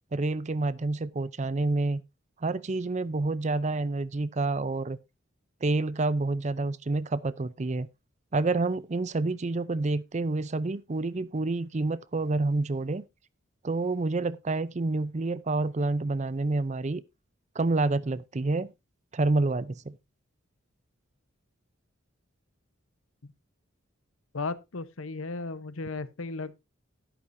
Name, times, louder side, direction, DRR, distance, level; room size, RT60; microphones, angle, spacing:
voice 1, 0.1-2.0 2.4-5.0 5.6-7.9 8.3-13.0 13.6-17.0 17.6-18.7 19.1-20.0, right 3 dB, 35° right, 0.5 m, -28 dB
voice 2, 24.3-26.5, left 3 dB, 80° left, 0.9 m, -35 dB
11.5 x 11.0 x 2.6 m
head